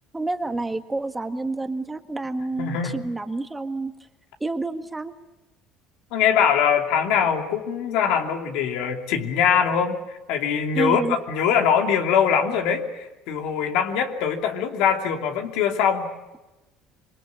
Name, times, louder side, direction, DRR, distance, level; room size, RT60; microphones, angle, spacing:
voice 1, 0.1-3.9 4.4-5.1 10.7-11.2, right 2 dB, 15° right, 7 dB, 1.7 m, -28 dB
voice 2, 2.6-3.0 6.1-16.1, left 7 dB, 75° left, 4 dB, 2.8 m, -22 dB
26.0 x 23.0 x 8.5 m, 1.1 s
supercardioid pair, 90°, 0 cm